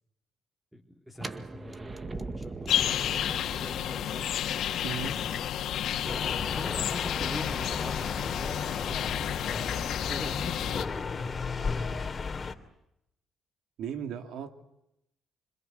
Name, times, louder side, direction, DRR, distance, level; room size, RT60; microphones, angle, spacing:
voice 1, 0.7-4.3 5.0-5.5 6.0-9.7 10.0-11.5, left 1 dB, 5° right, 3.6 m, -43 dB
sound 1, 1.1-7.0, right 3 dB, 30° right, 2.0 m, -42 dB
sound 2, 2.7-10.9, left 10 dB, 75° left, 2.2 m, -31 dB
voice 2, 4.8-5.2 13.8-14.6, right 7 dB, 75° right, 2.7 m, -36 dB
sound 3, 6.0-12.5, left 4 dB, 35° left, 2.9 m, -35 dB
26.5 x 26.5 x 8.1 m
cardioid pair, 90°, 0 cm